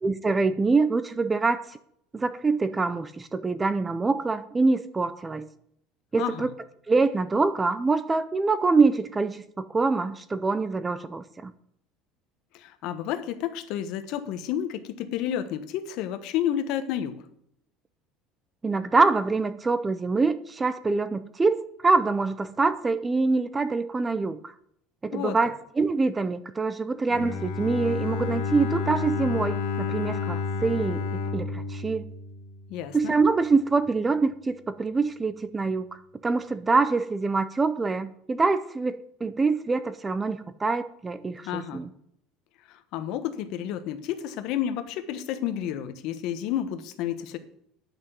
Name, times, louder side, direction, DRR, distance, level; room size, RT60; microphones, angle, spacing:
voice 1, 0.0-1.8 2.1-5.5 6.1-6.5 6.9-11.5 18.6-24.5 25.0-32.1 32.9-41.9, right 3 dB, 10° right, 14 dB, 0.4 m, -25 dB
voice 2, 12.5-17.2 25.1-25.4 32.7-33.1 41.4-41.8 42.7-47.4, left 10 dB, 55° left, 11 dB, 1.1 m, -31 dB
Bowed string instrument, 27.1-33.0, left 4 dB, 80° left, 1.5 m, -30 dB
10.5 x 6.0 x 7.9 m, 0.72 s
cardioid pair, 165°, 0 cm